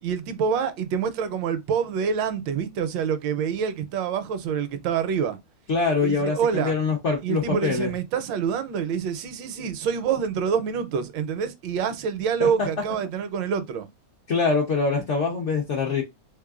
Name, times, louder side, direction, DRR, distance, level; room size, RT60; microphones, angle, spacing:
voice 1, 0.0-5.4 6.0-6.7 7.2-13.9, right 7 dB, 75° right, 1.2 m, -26 dB
voice 2, 5.7-7.9 12.4-12.7 14.3-16.0, left 4 dB, 65° left, 0.7 m, -24 dB
3.6 x 3.3 x 2.3 m
omnidirectional pair, 2.1 m